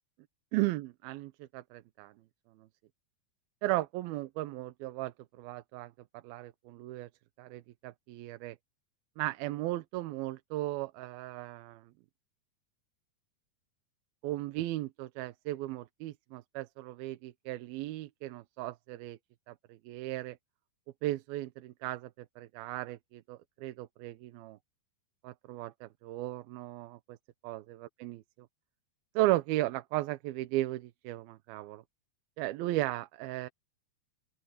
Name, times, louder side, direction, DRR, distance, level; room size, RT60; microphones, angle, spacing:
voice 1, 0.5-2.1 2.6-2.7 3.6-5.9 6.2-7.1 7.4-8.6 9.2-11.8 14.2-19.2 19.5-20.4 21.0-22.1 22.4-24.6 25.2-27.2 27.4-27.6 28.0-28.2 29.2-31.8 32.4-33.5, right 17 dB, 90° right, 2.7 m, -36 dB
open air
omnidirectional pair, 4.2 m